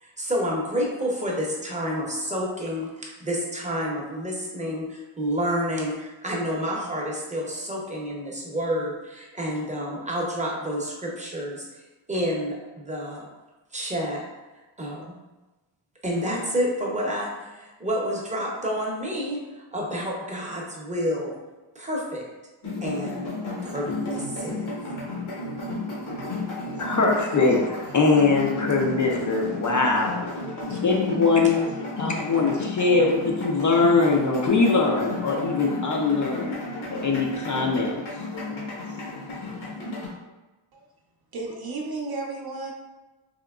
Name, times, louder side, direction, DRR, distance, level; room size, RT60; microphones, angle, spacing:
voice 1, 0.0-11.7 12.1-13.3 13.7-14.2 14.8-15.0 16.0-21.4 21.7-22.2 22.8-23.3 23.6-24.7, equal, 15° right, -2 dB, 0.7 m, -29 dB
sound 1, 22.6-40.1, left 2 dB, 70° left, 1.2 m, -33 dB
voice 2, 26.8-30.2 30.7-31.6 32.0-36.5 36.9-38.0, left 3 dB, 40° left, 0 dB, 0.4 m, -22 dB
voice 3, 41.3-42.7, right 3 dB, 50° right, 0 dB, 0.6 m, -33 dB
3.6 x 2.8 x 2.3 m, 1.1 s
wide cardioid pair, 95°, 48 cm